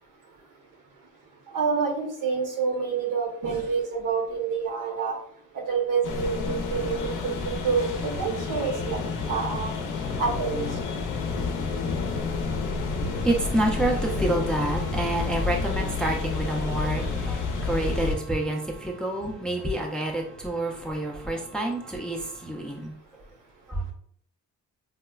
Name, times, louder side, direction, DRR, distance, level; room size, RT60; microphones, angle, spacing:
voice 1, 1.5-5.2 5.5-7.3 7.6-7.9 8.2-9.7 10.2-10.7, right 5 dB, 80° right, 0.9 m, -27 dB
sound 1, 6.0-18.2, left 4 dB, 70° left, 0.5 m, -30 dB
voice 2, 13.0-22.9 23.7-23.8, right 1 dB, 5° left, 0.4 m, -28 dB
4.7 x 2.1 x 2.3 m
wide cardioid pair, 140°, 32 cm